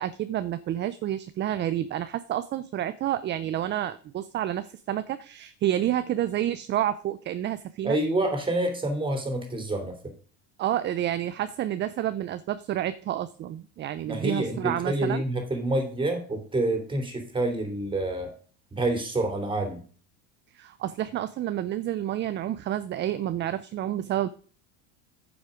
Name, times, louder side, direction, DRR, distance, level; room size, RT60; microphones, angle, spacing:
voice 1, 0.0-8.0 10.6-15.2 20.5-24.3, right 12 dB, 30° right, 13 dB, 0.5 m, -29 dB
voice 2, 7.8-10.0 14.0-18.3 18.7-19.8, right 1 dB, 15° right, 4 dB, 3.1 m, -27 dB
9.5 x 7.2 x 5.1 m, 0.42 s
supercardioid pair, 125°, 35 cm